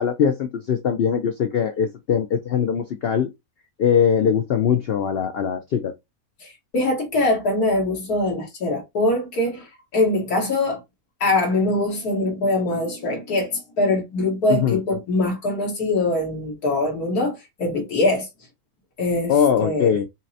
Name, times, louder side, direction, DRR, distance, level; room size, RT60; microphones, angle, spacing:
voice 1, 0.0-3.3 3.8-5.9 14.5-14.8 19.3-20.1, left 7 dB, 70° left, 0.5 m, -21 dB
voice 2, 6.4-10.8 11.2-18.3 19.0-19.3 19.6-19.9, left 2 dB, 85° left, 2.1 m, -23 dB
5.6 x 2.1 x 2.7 m
omnidirectional pair, 1.6 m